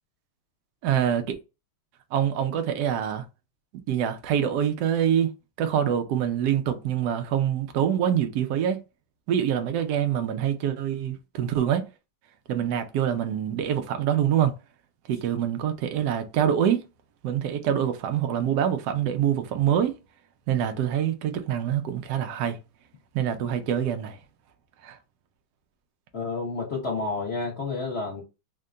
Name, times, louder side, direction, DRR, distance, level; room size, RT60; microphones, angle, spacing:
voice 1, 0.8-1.2 2.1-3.3 3.9-5.3 5.6-8.8 9.3-11.8 12.5-14.5 15.1-16.8 17.2-19.9 20.5-22.6 23.1-24.2 24.8-25.0, right 9 dB, 75° right, 0.9 m, -25 dB
voice 2, 26.1-28.2, left 3 dB, 50° left, 0.7 m, -30 dB
3.6 x 2.2 x 3.7 m
omnidirectional pair, 2.4 m